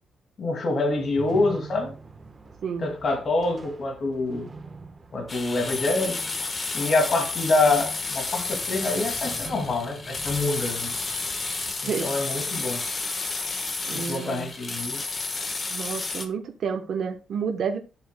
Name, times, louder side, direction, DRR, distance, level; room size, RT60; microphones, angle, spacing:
voice 1, 0.4-1.9 2.8-4.5 5.1-6.2 6.7-10.9 11.8-12.8 13.9-15.0, left 2 dB, 45° left, 2.3 m, -26 dB
sound 1, 0.9-11.7, right 3 dB, 25° right, 1.1 m, -44 dB
sound 2, 5.3-16.3, left 3 dB, 30° left, 1.2 m, -31 dB
voice 2, 11.8-12.1 13.9-14.5 15.7-17.8, right 6 dB, 60° right, 0.9 m, -30 dB
11.5 x 7.5 x 2.2 m
cardioid pair, 135°, 0 cm